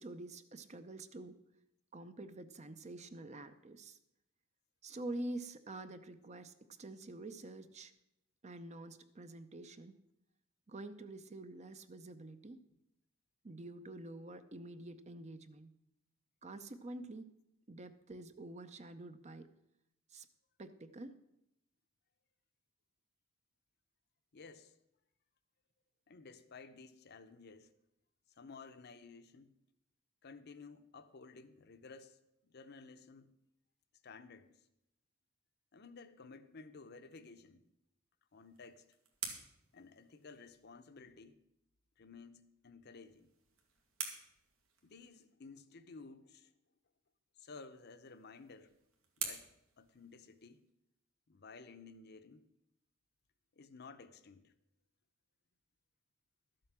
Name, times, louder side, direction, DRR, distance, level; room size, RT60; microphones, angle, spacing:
voice 1, 0.0-1.4 1.9-4.0 4.8-7.9 8.4-9.9 10.7-12.6 13.4-15.7 16.4-17.3 17.7-19.5 20.1-20.3 20.6-21.1, right 2 dB, 35° right, 0.6 m, -47 dB
voice 2, 24.3-24.7 26.1-27.7 28.4-29.5 30.2-33.4 34.0-34.6 35.7-37.6 38.3-38.8 39.7-41.4 42.0-43.3 44.8-46.5 47.4-48.7 49.2-49.5 49.8-50.6 51.3-52.5 53.6-54.5, left 4 dB, 50° left, 0.7 m, -54 dB
sound 1, 38.3-40.8 42.9-45.3 47.6-50.7, right 6 dB, 90° right, 2.0 m, -49 dB
12.5 x 7.7 x 6.0 m
head